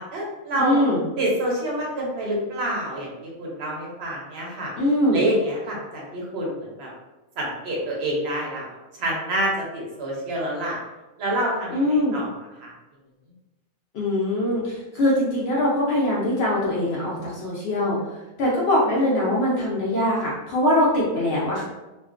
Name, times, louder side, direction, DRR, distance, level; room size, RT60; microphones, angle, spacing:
voice 1, 0.0-0.9 1.2-4.7 5.1-6.9 7.4-10.8 11.2-12.7, right 1 dB, 60° right, -3 dB, 0.7 m, -27 dB
voice 2, 0.6-1.0 4.8-5.2 11.7-12.2 13.9-18.0 18.4-21.6, left 1 dB, 65° left, -5 dB, 0.6 m, -22 dB
2.4 x 2.2 x 2.4 m, 1.0 s
omnidirectional pair, 1.5 m